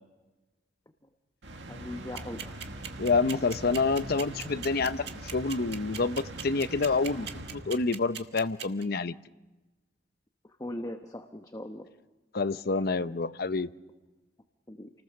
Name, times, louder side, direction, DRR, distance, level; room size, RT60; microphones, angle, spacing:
sound 1, 1.4-8.1, right 1 dB, 90° right, 2.0 m, -42 dB
voice 1, 1.7-2.6 10.6-11.9 14.7-14.9, left 1 dB, 20° left, 6 dB, 1.0 m, -39 dB
sound 2, 2.2-8.8, right 9 dB, 65° right, 1.6 m, -38 dB
voice 2, 3.0-9.1 12.3-13.7, left 4 dB, 60° left, 13 dB, 0.7 m, -28 dB
29.0 x 19.5 x 6.5 m, 1.2 s
head